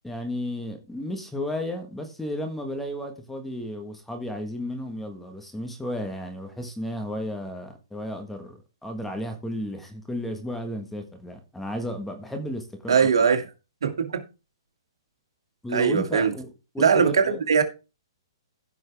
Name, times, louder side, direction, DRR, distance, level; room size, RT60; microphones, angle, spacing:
voice 1, 0.0-13.1 15.6-16.5 16.7-17.4, left 1 dB, 5° left, 1.5 m, -33 dB
voice 2, 12.9-13.4 13.8-14.2 15.7-16.3 16.8-17.6, right 6 dB, 80° right, 2.5 m, -20 dB
15.0 x 6.2 x 3.5 m
hypercardioid pair, 150°, 3 cm